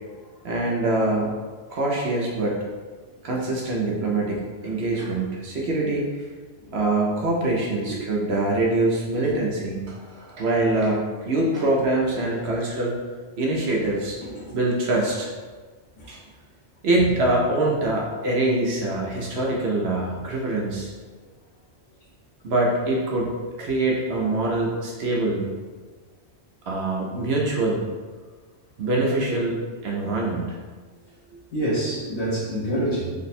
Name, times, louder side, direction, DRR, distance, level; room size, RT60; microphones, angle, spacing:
voice 1, 0.4-1.4 1.7-2.6 3.2-6.1 6.7-13.0 13.4-14.2 14.5-15.3 16.1-16.2 16.8-20.9 22.4-23.3 23.6-25.5 26.7-27.9 28.8-30.6, right 2 dB, 65° right, -2 dB, 0.8 m, -24 dB
voice 2, 14.2-14.6 16.0-16.1 31.5-33.1, right 1 dB, 70° left, -8 dB, 1.1 m, -27 dB
3.4 x 2.1 x 4.1 m, 1.4 s
omnidirectional pair, 1.3 m